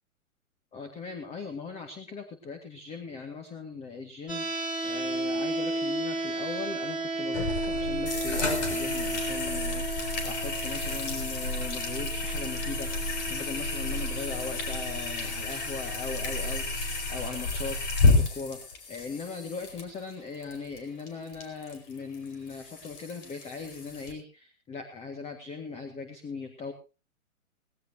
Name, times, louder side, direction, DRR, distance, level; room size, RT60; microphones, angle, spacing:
voice 1, 0.7-17.8 18.1-18.6 18.9-26.7, left 4 dB, 15° left, 6 dB, 1.8 m, -39 dB
sound 1, 4.3-16.3, right 2 dB, ahead, 3.5 m, -34 dB
sound 2, 7.3-18.1, left 1 dB, 60° left, 5.4 m, -34 dB
sound 3, 8.1-24.1, left 3 dB, 40° left, 4.7 m, -32 dB
18.5 x 16.5 x 2.8 m, 0.31 s
figure-of-eight pair, 125°, 41 cm